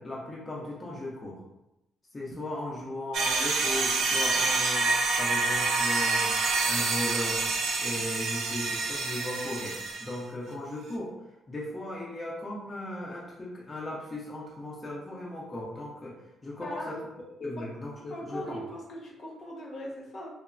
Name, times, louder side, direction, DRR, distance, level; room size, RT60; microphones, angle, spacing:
voice 1, 0.0-1.4 2.1-4.9 5.2-6.3 6.7-7.4 7.8-11.1 11.5-16.1 16.4-18.6, left 1 dB, 25° left, -5 dB, 0.5 m, -37 dB
sound 1, 3.1-10.1, right 3 dB, 75° right, 0.4 m, -27 dB
voice 2, 16.6-17.1 17.6-17.7 18.1-20.3, equal, 60° left, -3 dB, 0.9 m, -40 dB
3.0 x 2.0 x 2.4 m, 0.91 s
cardioid pair, 90°, 0 cm